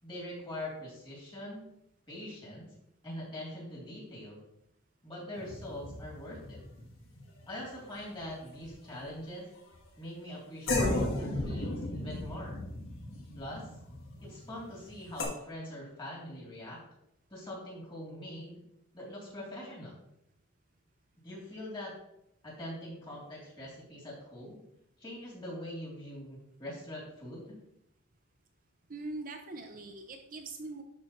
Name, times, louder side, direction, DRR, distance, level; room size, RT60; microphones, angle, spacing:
voice 1, 0.0-1.7 2.1-2.7 3.0-4.4 5.0-6.6 7.5-9.5 10.0-12.6 13.3-13.7 14.2-16.8 17.3-18.6 18.9-20.0 21.2-21.9 22.4-24.6 25.0-27.6, left 1 dB, 25° left, -5 dB, 3.0 m, -43 dB
sound 1, 5.3-8.2 8.5-9.1 9.7-9.9 10.7-15.2, left 2 dB, 65° left, 1.7 m, -35 dB
voice 2, 28.9-30.8, right 2 dB, 40° right, 4 dB, 0.6 m, -42 dB
11.5 x 4.8 x 3.1 m, 0.80 s
head